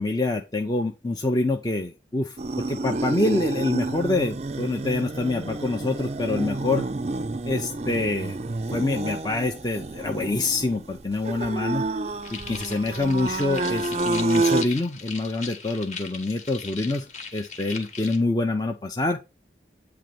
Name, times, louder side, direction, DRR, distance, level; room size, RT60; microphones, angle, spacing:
voice 1, 0.0-6.9 7.4-8.4 8.7-11.8 12.3-17.1 17.3-19.2, left 2 dB, 20° left, 4 dB, 0.6 m, -26 dB
sound 1, 2.4-14.6, right 2 dB, 35° right, 0.4 m, -29 dB
sound 2, 12.2-18.2, left 5 dB, 40° left, 1.4 m, -39 dB
9.0 x 3.4 x 6.7 m, 0.27 s
head